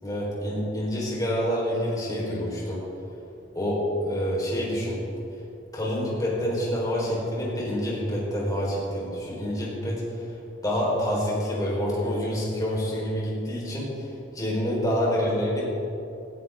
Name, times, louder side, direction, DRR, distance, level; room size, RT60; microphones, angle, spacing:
voice 1, 0.0-2.8 3.5-5.0 5.7-10.0 10.6-13.9 14.3-15.6, equal, 20° left, -5 dB, 4.4 m, -27 dB
19.5 x 14.0 x 3.8 m, 2.7 s
head